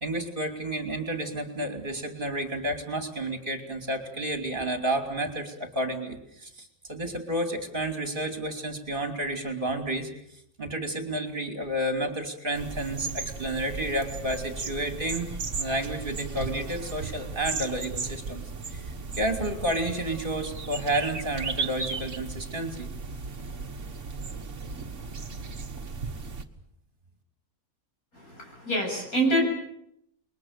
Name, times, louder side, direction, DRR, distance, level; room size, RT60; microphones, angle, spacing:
voice 1, 0.0-10.1 10.6-15.3 15.6-22.9, right 1 dB, 35° right, 5 dB, 3.2 m, -31 dB
sound 1, 12.5-26.4, right 4 dB, 50° right, 2.0 m, -36 dB
voice 2, 28.1-29.5, right 1 dB, 65° left, 0 dB, 8.1 m, -26 dB
29.0 x 22.0 x 6.8 m, 0.73 s
omnidirectional pair, 1.6 m